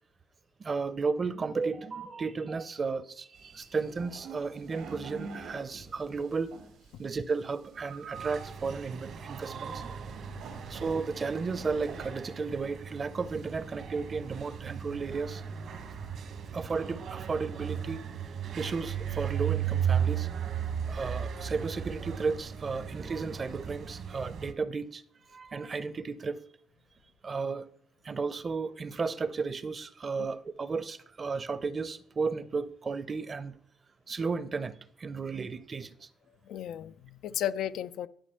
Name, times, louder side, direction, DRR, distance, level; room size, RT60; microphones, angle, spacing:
voice 1, 0.6-6.5 7.0-9.8 10.7-15.4 16.5-18.0 18.6-20.3 20.9-25.0 25.3-26.4 27.2-27.7 28.0-33.6 34.1-36.1, right 4 dB, 40° right, 0.7 m, -34 dB
sound 1, 3.3-12.1, right 5 dB, 90° right, 2.3 m, -47 dB
sound 2, 8.1-24.5, right 8 dB, 65° right, 1.3 m, -36 dB
voice 2, 36.5-38.1, left 11 dB, 80° left, 0.5 m, -34 dB
11.5 x 5.2 x 5.6 m
cardioid pair, 90°, 0 cm